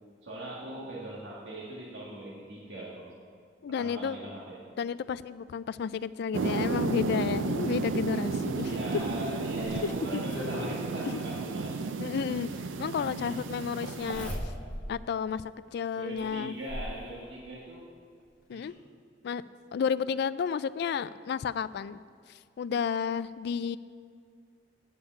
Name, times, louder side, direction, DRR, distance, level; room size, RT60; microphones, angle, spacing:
voice 1, 0.2-3.1 3.8-4.7 8.7-11.8 13.2-13.3 14.2-14.3 16.0-17.9 18.5-18.7, right 1 dB, 70° right, -4 dB, 1.7 m, -40 dB
voice 2, 3.6-4.2 4.8-8.7 9.8-9.9 11.0-11.2 12.0-12.5 12.8-14.3 14.9-16.6 18.5-18.7 19.2-19.4 19.7-22.0 22.3-23.8, left 6 dB, 60° left, 16 dB, 0.3 m, -32 dB
sound 1, 6.3-14.4, right 4 dB, 90° right, 0.5 m, -33 dB
Zipper (clothing), 9.0-10.8 12.2-12.3 13.9-14.9 15.4-15.5 16.2-17.0 18.2-18.3 18.6-18.7, left 1 dB, 5° left, 2.4 m, -38 dB
9.7 x 5.8 x 8.5 m, 2.2 s
head